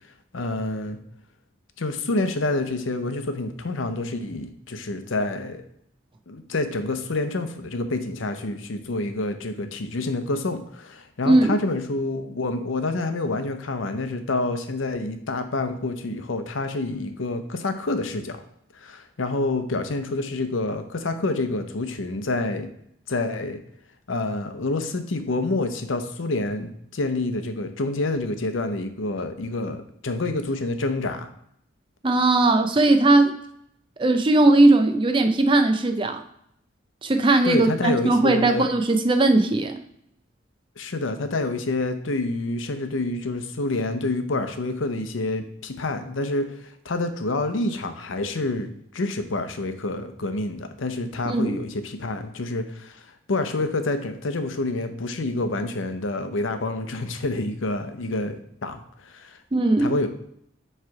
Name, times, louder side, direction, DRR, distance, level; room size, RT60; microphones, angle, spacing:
voice 1, 0.3-1.0 1.8-5.6 6.3-18.4 18.7-22.7 23.1-23.6 24.1-31.3 37.4-38.7 40.8-59.4 59.8-60.1, left 2 dB, 80° left, 8 dB, 0.7 m, -28 dB
voice 2, 32.0-33.3 34.0-36.2 37.0-39.8 51.3-51.6 59.5-60.0, right 2 dB, 25° right, 7 dB, 0.5 m, -19 dB
7.6 x 3.3 x 4.7 m, 0.71 s
head